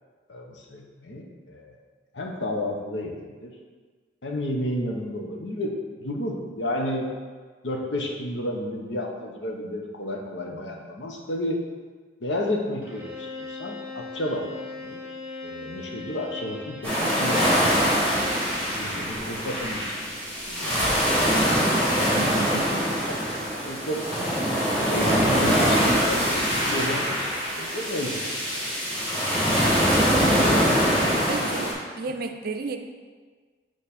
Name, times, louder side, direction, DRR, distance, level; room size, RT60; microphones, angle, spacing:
voice 1, 0.3-1.8 2.1-3.5 4.2-7.1 7.6-11.6 12.2-15.0 15.4-17.6 18.8-19.9 20.5-21.5 23.1-23.2 23.6-24.0 24.7-28.2 28.5-28.7 29.1-29.2, left 1 dB, 75° left, 1 dB, 0.9 m, -32 dB
Bowed string instrument, 12.8-18.5, left 3 dB, 10° right, 1.5 m, -39 dB
sound 1, 16.8-31.7, equal, 5° left, 1.8 m, -23 dB
voice 2, 22.2-22.8 29.9-30.3 31.3-32.8, right 3 dB, 55° right, 6 dB, 0.4 m, -33 dB
8.9 x 3.2 x 4.2 m, 1.5 s
head